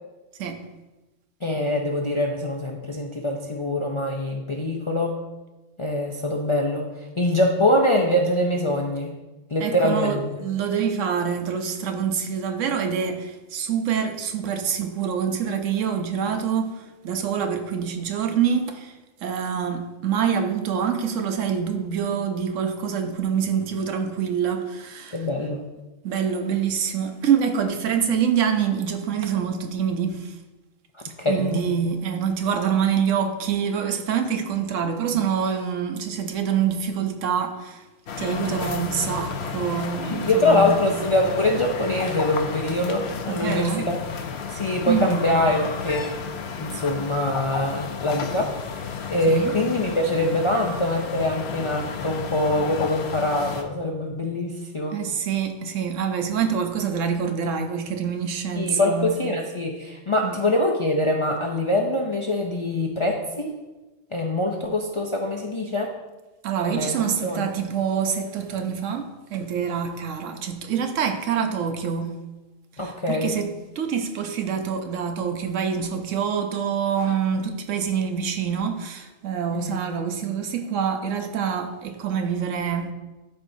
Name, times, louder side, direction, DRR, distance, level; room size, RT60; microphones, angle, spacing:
voice 1, 1.4-5.2 5.8-6.9 7.2-9.1 9.5-10.2 25.1-25.6 31.2-31.7 40.0-44.0 44.5-46.1 46.6-55.0 58.6-63.5 64.1-65.9 66.7-67.0 67.2-67.5 72.8-73.3 79.5-79.8, left 1 dB, 35° left, 0.5 m, -24 dB
voice 2, 9.6-25.2 26.0-30.3 31.0-37.8 38.2-40.8 43.3-43.9 44.9-45.3 49.3-49.5 54.9-59.2 60.2-60.4 66.4-72.1 72.8-82.9, right 7 dB, 80° right, 1.1 m, -26 dB
sound 1, 38.1-53.6, left 6 dB, 60° left, 0.9 m, -32 dB
12.5 x 4.4 x 2.7 m
omnidirectional pair, 1.3 m